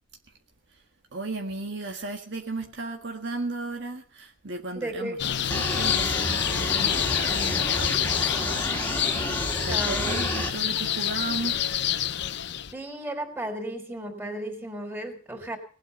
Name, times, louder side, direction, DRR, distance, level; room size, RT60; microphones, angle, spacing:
voice 1, 1.1-5.2 5.4-8.7 9.6-11.7, right 2 dB, 65° right, 3 dB, 1.7 m, -35 dB
voice 2, 4.7-5.2 9.7-10.3 12.7-15.6, right 1 dB, 10° right, 4 dB, 3.8 m, -34 dB
sound 1, 5.2-12.7, left 10 dB, 60° left, 0.7 m, -27 dB
sound 2, 5.5-10.5, left 1 dB, 10° left, 2.4 m, -30 dB
19.0 x 8.6 x 6.8 m, 0.42 s
head